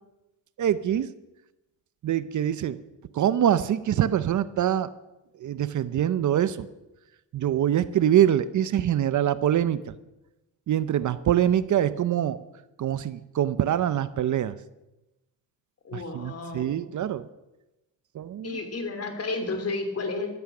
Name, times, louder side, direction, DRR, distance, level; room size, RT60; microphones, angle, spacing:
voice 1, 0.6-1.1 2.0-2.8 3.1-4.9 5.4-6.7 7.3-9.8 10.7-12.4 12.8-14.5 15.9-17.3 18.1-18.6, right 10 dB, 55° right, 14 dB, 0.7 m, -24 dB
voice 2, 15.8-16.9 18.4-20.3, left 3 dB, 40° left, 7 dB, 3.1 m, -32 dB
15.5 x 13.0 x 6.1 m, 0.99 s
cardioid pair, 110°, 37 cm